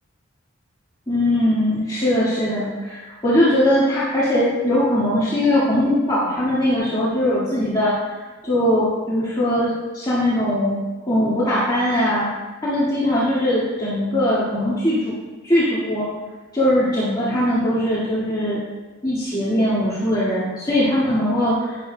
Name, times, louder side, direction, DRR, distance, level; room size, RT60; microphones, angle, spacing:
voice 1, 1.1-10.8 11.1-12.3 12.6-15.2 15.4-16.1 16.5-18.6 19.0-21.8, left 1 dB, 20° left, -11 dB, 2.1 m, -20 dB
10.0 x 10.0 x 2.3 m, 1.2 s
head